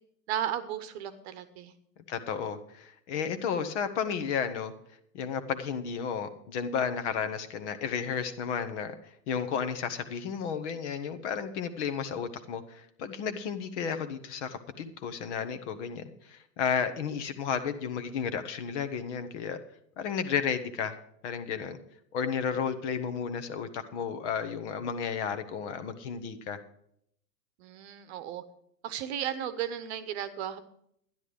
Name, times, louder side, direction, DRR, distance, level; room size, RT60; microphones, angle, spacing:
voice 1, 0.3-1.7 27.6-28.4 28.8-30.6, right 10 dB, 40° right, 12 dB, 1.1 m, -34 dB
voice 2, 2.1-4.7 5.1-19.6 20.0-21.8 22.1-26.6, left 7 dB, 45° left, 10 dB, 1.3 m, -33 dB
12.5 x 10.5 x 5.0 m, 0.71 s
figure-of-eight pair, 105°, 50 cm